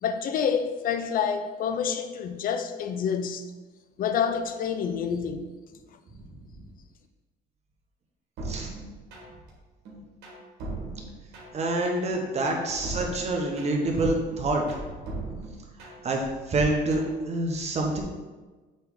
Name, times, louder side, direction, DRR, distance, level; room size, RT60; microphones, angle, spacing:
voice 1, 0.0-3.4 4.0-5.5, left 7 dB, 55° left, 0.6 m, -28 dB
sound 1, 8.4-9.5 9.8-11.7 12.1-14.0 14.3-16.2 16.5-17.1, right 3 dB, 80° right, 1.8 m, -39 dB
voice 2, 11.5-14.9 15.8-18.0, right 2 dB, 40° right, 1.3 m, -27 dB
7.9 x 3.4 x 3.9 m
cardioid pair, 110°, 17 cm